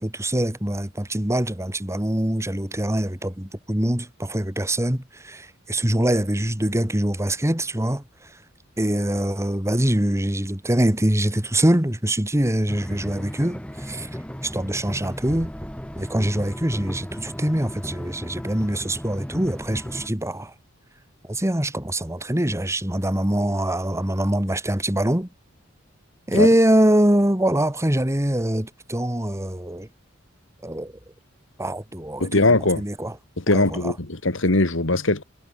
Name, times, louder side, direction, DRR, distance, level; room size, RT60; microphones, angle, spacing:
voice 1, 0.0-8.0 8.8-14.1 14.4-15.5 16.0-20.5 21.3-25.3 26.3-29.9 30.6-30.9 31.6-33.2 33.5-33.9, right 1 dB, 15° right, 2.3 m, -23 dB
sound 1, 12.7-20.1, equal, 5° left, 2.0 m, -35 dB
voice 2, 32.2-32.8 33.4-35.2, left 2 dB, 70° left, 2.2 m, -20 dB
head